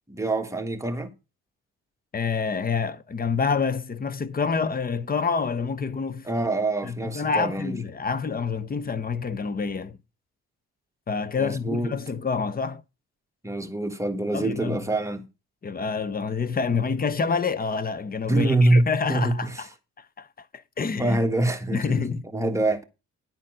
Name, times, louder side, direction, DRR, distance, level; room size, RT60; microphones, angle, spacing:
voice 1, 0.1-1.1 6.2-7.8 11.4-11.9 13.4-15.2 18.3-19.6 21.0-22.0 22.3-22.8, right 2 dB, 10° right, 1.5 m, -25 dB
voice 2, 2.1-6.3 6.8-10.0 11.1-12.8 14.3-14.8 15.6-19.7 20.0-21.2 21.7-22.3, left 5 dB, 30° left, 0.9 m, -27 dB
10.5 x 4.2 x 7.7 m
cardioid pair, 90°, 30 cm